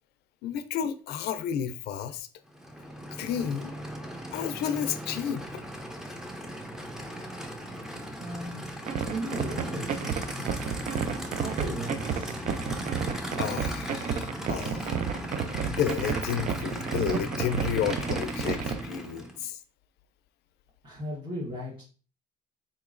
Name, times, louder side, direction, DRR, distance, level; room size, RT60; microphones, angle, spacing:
voice 1, 0.4-2.3 3.1-3.7 4.3-5.6 13.4-15.0 15.7-19.6, left 8 dB, 75° left, 0.4 m, -31 dB
Aircraft / Idling, 2.5-19.4, equal, 5° right, 0.6 m, -37 dB
voice 2, 8.2-8.7 9.1-10.7 11.4-12.4 20.8-21.8, right 1 dB, 30° right, 1.3 m, -37 dB
sound 1, 8.9-18.8, right 7 dB, 50° right, 0.4 m, -31 dB
4.1 x 2.9 x 2.4 m
cardioid pair, 110°, 17 cm